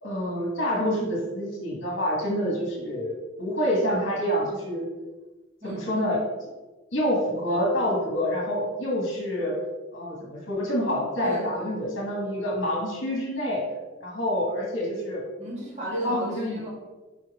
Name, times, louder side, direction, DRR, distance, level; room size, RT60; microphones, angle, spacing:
voice 1, 0.0-4.9 5.6-6.5 6.9-9.6 9.9-13.7 14.0-15.2 16.0-16.6, equal, 55° left, -3 dB, 1.6 m, -27 dB
voice 2, 5.6-6.0 11.2-11.8 15.4-16.7, right 1 dB, 35° right, -4 dB, 2.0 m, -33 dB
5.3 x 4.5 x 4.8 m, 1.2 s
head